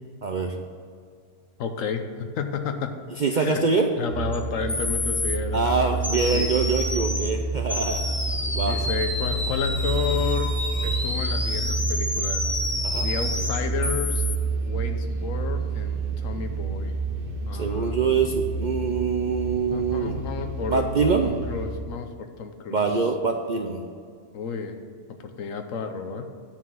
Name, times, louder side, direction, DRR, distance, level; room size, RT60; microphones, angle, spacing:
voice 1, 0.2-0.6 3.2-3.9 5.5-8.0 8.5-8.8 12.8-13.1 17.5-20.2 20.7-21.3 22.7-23.8, right 5 dB, 70° right, 3 dB, 0.4 m, -24 dB
voice 2, 1.6-2.9 3.3-3.6 4.0-6.5 8.7-10.5 10.8-12.6 13.0-14.2 14.7-16.9 17.5-18.2 19.6-22.8 24.3-24.8 25.1-26.2, left 6 dB, 65° left, 6 dB, 1.2 m, -32 dB
sound 1, 4.1-21.8, right 3 dB, 45° right, 0.9 m, -29 dB
sound 2, 4.3-4.4 4.7-5.4 6.0-7.3 7.7-14.4, left 1 dB, 15° left, 0.5 m, -29 dB
9.5 x 4.7 x 7.7 m, 2.2 s
omnidirectional pair, 1.5 m